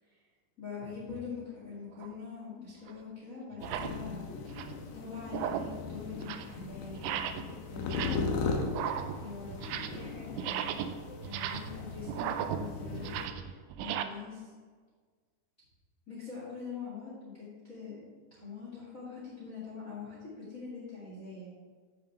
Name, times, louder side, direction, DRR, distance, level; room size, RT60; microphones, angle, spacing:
voice 1, 0.6-4.6 4.9-10.9 11.2-14.5 16.1-18.0 18.3-21.5, left 5 dB, 30° left, -7 dB, 1.8 m, -44 dB
sound 1, 2.0-2.2 2.9-3.0 3.5-4.0 4.4-4.8 5.2-5.8 6.1-6.5 6.9-7.5 7.8-8.4 8.6-10.1 10.3-14.0, right 10 dB, 90° right, 2.0 m, -36 dB
sound 2, 3.6-13.3, left 4 dB, 85° left, 3.0 m, -38 dB
14.0 x 5.2 x 3.4 m, 1.5 s
omnidirectional pair, 4.7 m